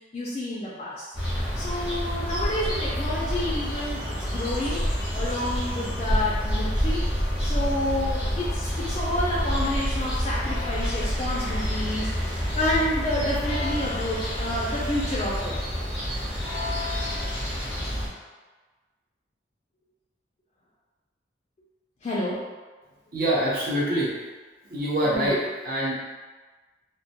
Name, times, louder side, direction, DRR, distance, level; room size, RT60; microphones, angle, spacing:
voice 1, 0.1-1.0 1.5-7.0 7.4-15.5 22.0-22.4 25.0-25.3, left 1 dB, 35° left, -7 dB, 0.3 m, -29 dB
sound 1, 1.1-18.1, equal, 5° right, 0.6 m, -28 dB
voice 2, 23.1-24.1 24.7-25.9, right 1 dB, 50° right, -6 dB, 0.6 m, -25 dB
2.1 x 2.1 x 2.7 m, 1.3 s
head